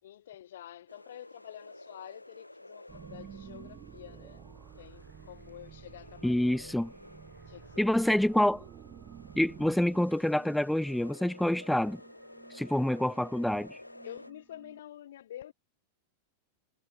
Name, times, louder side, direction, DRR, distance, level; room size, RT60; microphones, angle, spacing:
voice 1, 0.0-6.7 7.5-8.0 8.5-8.7 14.0-15.5, left 11 dB, 60° left, 6.7 m, -48 dB
sound 1, 0.9-14.3, left 1 dB, 85° left, 3.6 m, -52 dB
sound 2, 2.9-14.8, right 10 dB, 30° right, 5.6 m, -52 dB
voice 2, 6.2-6.9 7.8-8.6 9.4-12.0 12.5-13.8, left 1 dB, ahead, 0.6 m, -27 dB
figure-of-eight pair, 90°, 0 cm